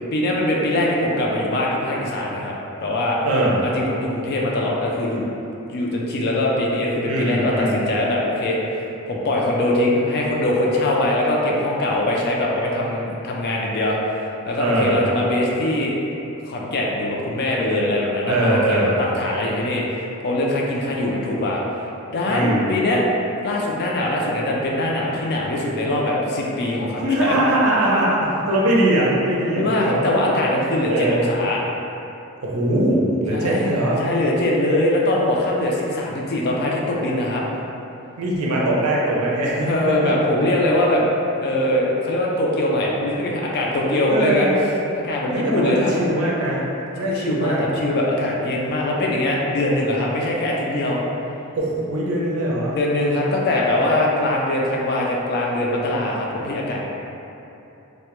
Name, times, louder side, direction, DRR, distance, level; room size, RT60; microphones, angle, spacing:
voice 1, 0.1-2.5 2.8-3.2 3.6-5.3 5.7-16.0 16.5-21.6 22.1-23.0 23.4-27.4 28.6-28.7 29.5-31.6 33.3-33.7 34.0-37.4 39.6-41.0 41.4-44.5 45.0-45.9 47.1-51.0 52.8-56.8, left 1 dB, 50° left, -3 dB, 0.3 m, -22 dB
voice 2, 3.2-3.6 7.1-7.8 14.6-15.0 18.3-19.0 22.3-22.7 27.0-30.3 30.9-31.3 32.4-34.0 38.2-40.1 44.1-44.5 45.3-46.6 47.0-47.6 51.6-52.8, right 1 dB, 75° right, -4 dB, 0.5 m, -21 dB
2.1 x 2.1 x 2.9 m, 2.9 s
head